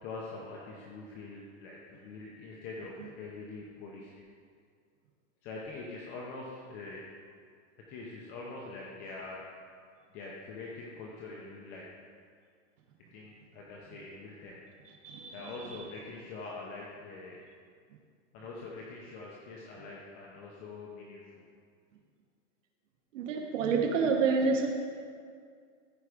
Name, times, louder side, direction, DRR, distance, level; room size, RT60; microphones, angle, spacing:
voice 1, 0.0-4.1 5.4-7.1 7.9-9.4 10.1-11.8 13.1-14.6 15.3-17.4 18.3-21.4, left 3 dB, 25° left, -3 dB, 0.8 m, -44 dB
voice 2, 15.0-15.5 23.1-24.7, right 5 dB, 80° right, 2 dB, 1.2 m, -28 dB
14.5 x 4.9 x 4.9 m, 2.1 s
supercardioid pair, 175°, 37 cm